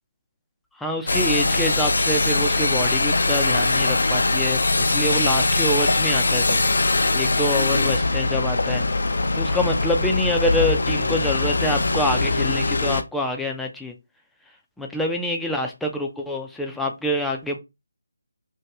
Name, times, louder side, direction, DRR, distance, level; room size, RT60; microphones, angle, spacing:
voice 1, 0.8-6.6 7.1-8.8 9.3-13.9 14.8-17.6, left 1 dB, 5° left, 2 dB, 0.4 m, -26 dB
sound 1, 1.1-13.0, left 3 dB, 65° left, 0.4 m, -21 dB
2.8 x 2.5 x 3.3 m, 0.24 s
figure-of-eight pair, 155°, 0 cm